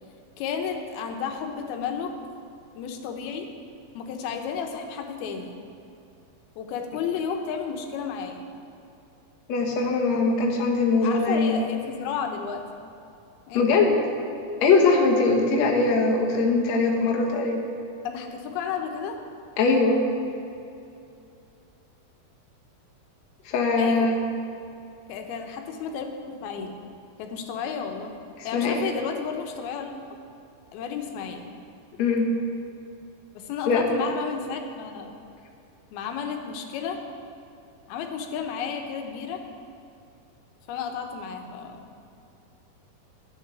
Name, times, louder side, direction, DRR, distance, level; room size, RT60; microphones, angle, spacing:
voice 1, 0.4-2.1 2.7-3.5 3.9-5.6 6.6-8.4 11.0-12.6 13.5-13.6 18.0-19.2 23.8-24.1 25.1-26.7 27.2-28.1 28.4-29.9 30.7-31.5 33.3-35.1 35.9-37.0 37.9-39.4 40.7-41.9, left 6 dB, 90° left, 4 dB, 2.9 m, -32 dB
voice 2, 9.5-11.6 13.5-14.0 14.6-17.6 19.6-20.0 23.5-24.2 28.4-28.8 32.0-32.3 33.7-33.9, left 3 dB, 60° left, -1 dB, 2.2 m, -21 dB
11.5 x 9.3 x 6.0 m, 2.7 s
omnidirectional pair, 4.3 m